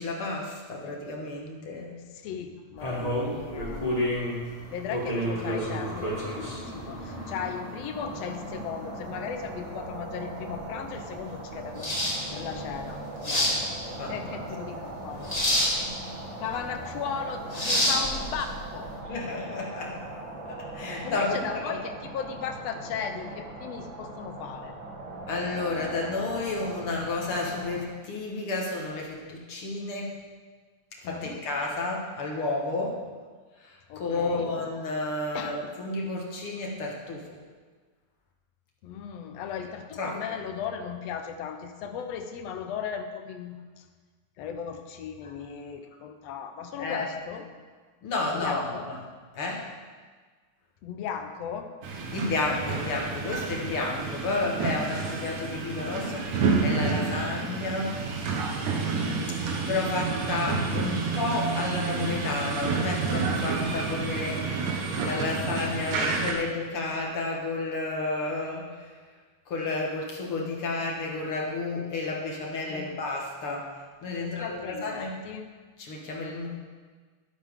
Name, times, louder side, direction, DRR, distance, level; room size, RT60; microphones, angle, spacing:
voice 1, 0.0-1.9 14.0-14.4 15.8-16.1 19.1-20.1 20.5-21.8 25.3-30.1 31.0-33.0 33.6-37.3 40.0-40.2 46.8-47.1 48.0-49.0 49.3-49.6 52.1-58.0 59.7-64.6 65.0-68.9 69.5-73.7 74.0-75.2 75.8-76.5, left 2 dB, 55° left, -2 dB, 2.1 m, -31 dB
voice 2, 2.2-4.0 4.7-13.6 14.1-15.3 16.4-18.9 21.0-24.8 31.0-31.4 33.9-34.5 35.3-35.6 38.8-43.8 44.4-47.5 48.3-48.9 50.8-51.7 58.7-59.4 72.7-73.0 74.2-75.5, left 7 dB, 70° left, 6 dB, 1.8 m, -36 dB
sound 1, 2.8-19.0, equal, 15° left, 1.5 m, -31 dB
sound 2, 7.9-27.8, right 2 dB, 50° right, 1.8 m, -40 dB
sound 3, 51.8-66.3, right 4 dB, 80° right, 2.7 m, -29 dB
12.0 x 11.5 x 3.6 m, 1.5 s
omnidirectional pair, 3.3 m